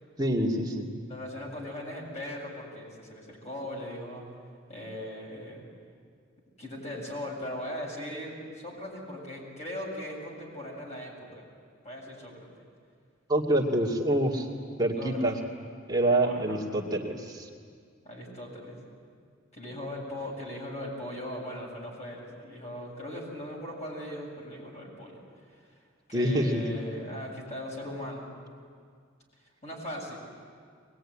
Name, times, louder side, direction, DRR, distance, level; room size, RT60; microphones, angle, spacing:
voice 1, 0.2-0.9 13.3-14.5 14.8-15.4 15.9-17.5 26.1-26.6, right 1 dB, 20° right, -2 dB, 2.4 m, -26 dB
voice 2, 1.1-4.2 4.7-5.7 6.6-11.5 11.8-12.5 15.0-15.3 16.1-16.6 18.0-18.8 19.5-25.2 26.1-28.3 29.6-30.2, left 1 dB, 35° left, -2 dB, 7.4 m, -39 dB
23.5 x 21.0 x 10.0 m, 2.1 s
head